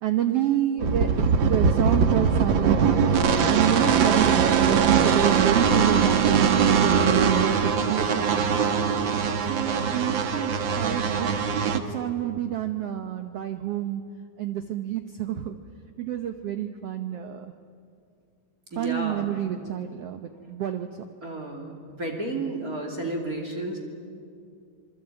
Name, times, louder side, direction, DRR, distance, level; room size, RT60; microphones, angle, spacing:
voice 1, 0.0-2.9 3.5-8.6 9.4-11.3 11.7-14.0 14.4-15.6 16.0-17.5 18.8-20.9, right 11 dB, 85° right, 7 dB, 1.3 m, -28 dB
sound 1, 0.8-11.8, right 6 dB, 70° right, 1.1 m, -22 dB
voice 2, 18.7-19.3 21.2-23.8, right 2 dB, 25° right, 1 dB, 2.6 m, -32 dB
26.5 x 22.0 x 9.0 m, 2.3 s
omnidirectional pair, 4.1 m